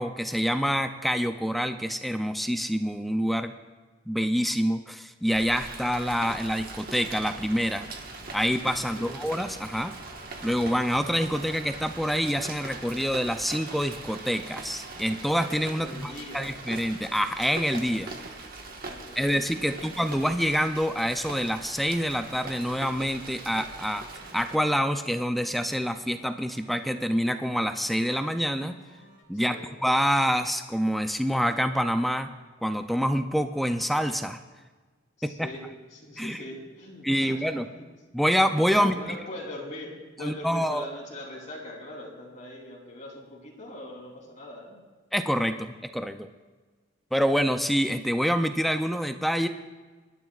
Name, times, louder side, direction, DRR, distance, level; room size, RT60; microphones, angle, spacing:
voice 1, 0.0-3.5 4.1-7.9 8.3-9.9 10.4-18.1 19.2-24.0 24.3-28.8 29.3-32.3 32.6-34.4 35.2-35.5 36.2-36.4 37.0-37.6 38.1-39.2 40.2-40.8 45.1-46.3 47.1-49.5, equal, ahead, 7 dB, 0.4 m, -26 dB
Rain, 5.3-24.5, right 3 dB, 50° right, 1.4 m, -41 dB
voice 2, 8.8-9.1 15.7-16.5 18.3-20.0 29.3-29.7 35.2-37.9 38.8-44.8, left 1 dB, 40° left, -2 dB, 3.4 m, -42 dB
sound 1, 23.6-29.2, left 1 dB, 60° left, 3.8 m, -56 dB
24.0 x 12.5 x 2.4 m, 1.4 s
head